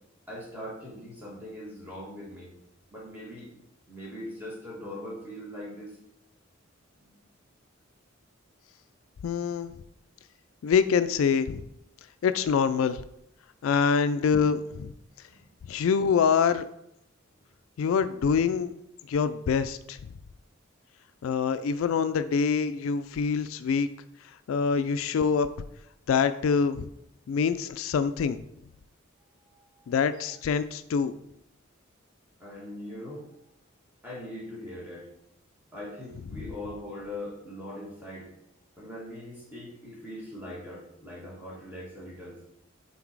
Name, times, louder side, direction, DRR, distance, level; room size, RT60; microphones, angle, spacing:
voice 1, 0.3-2.5 2.9-3.5 3.9-6.0 15.3-15.4 29.5-29.8 32.4-33.3 34.0-35.1 35.7-38.3 38.8-42.4, left 1 dB, 10° right, -6 dB, 2.2 m, -41 dB
voice 2, 9.2-9.7 10.6-11.6 12.2-13.0 13.6-14.9 15.7-16.7 17.8-18.7 19.1-20.0 21.2-23.9 24.5-25.5 26.1-26.9 27.3-28.4 29.9-31.1, left 6 dB, 75° left, 12 dB, 0.3 m, -25 dB
5.9 x 3.9 x 4.6 m, 0.78 s
head